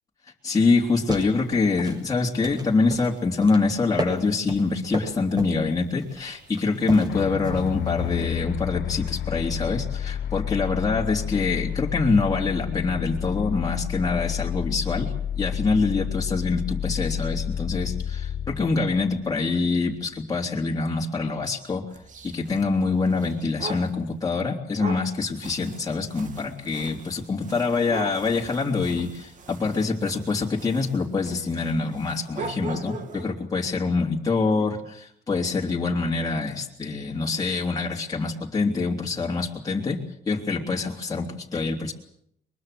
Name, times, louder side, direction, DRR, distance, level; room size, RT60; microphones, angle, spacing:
voice 1, 0.4-21.8 22.2-40.0 40.3-41.9, left 4 dB, 20° left, -2 dB, 3.4 m, -25 dB
sound 1, 0.9-8.4, right 1 dB, 25° right, 7.1 m, -35 dB
sound 2, 7.1-19.8, left 9 dB, 80° left, 1.3 m, -30 dB
sound 3, 21.9-24.0 24.8-33.4, right 3 dB, 50° right, 2.6 m, -40 dB
23.0 x 22.5 x 7.8 m, 0.72 s
cardioid pair, 110°, 17 cm